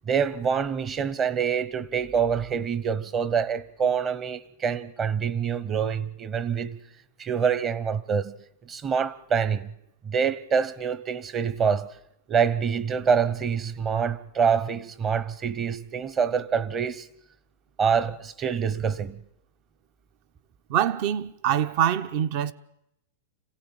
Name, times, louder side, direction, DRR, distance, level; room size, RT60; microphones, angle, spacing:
voice 1, 0.1-6.8 7.2-8.3 8.6-9.7 10.0-11.9 12.3-17.1 17.8-19.2, right 6 dB, 25° right, 1.0 m, -26 dB
voice 2, 20.7-22.5, right 10 dB, 50° right, 1.0 m, -24 dB
26.5 x 16.5 x 8.9 m
hypercardioid pair, 140°, 0 cm